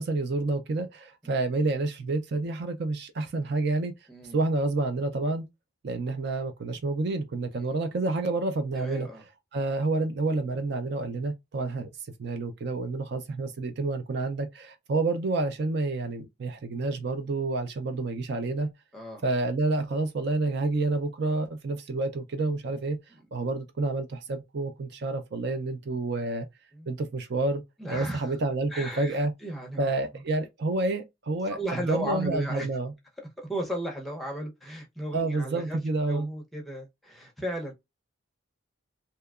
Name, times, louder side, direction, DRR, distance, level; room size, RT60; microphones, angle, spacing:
voice 1, 0.0-3.9 4.3-5.5 5.8-9.1 9.5-11.9 12.2-18.7 19.2-23.0 23.3-26.5 26.9-27.6 27.9-29.3 29.8-31.6 31.9-32.9 35.1-36.3, right 3 dB, 55° right, 0.4 m, -29 dB
voice 2, 4.1-4.4 7.5-7.7 8.8-9.2 18.9-19.2 26.7-26.9 27.8-28.2 28.7-29.9 31.5-32.7 33.4-35.8 36.1-37.7, equal, ahead, 0.6 m, -35 dB
2.8 x 2.2 x 2.3 m
head